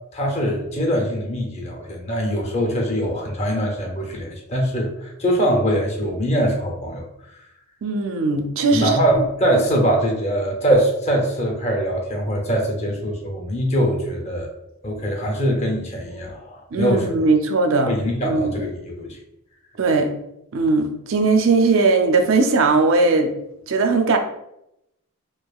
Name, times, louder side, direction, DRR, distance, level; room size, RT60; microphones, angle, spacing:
voice 1, 0.1-7.0 8.7-14.5 14.8-17.0 17.8-19.2, equal, 30° left, 1 dB, 0.7 m, -22 dB
voice 2, 7.8-8.9 16.7-17.9 18.2-18.6 19.8-20.1 20.5-23.3 23.7-24.2, right 3 dB, 60° right, 5 dB, 0.5 m, -18 dB
4.6 x 2.4 x 2.3 m, 0.84 s
head